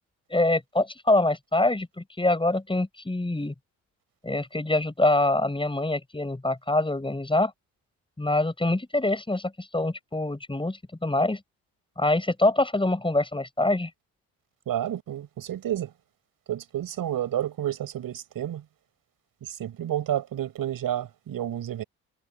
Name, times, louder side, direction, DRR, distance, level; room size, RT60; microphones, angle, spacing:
voice 1, 0.3-3.5 4.2-7.5 8.2-11.4 12.0-13.9, left 2 dB, 15° left, 7.7 m, -25 dB
voice 2, 14.7-15.9 16.5-18.6 19.6-21.8, right 11 dB, 60° right, 5.6 m, -30 dB
supercardioid pair, 70°, 38 cm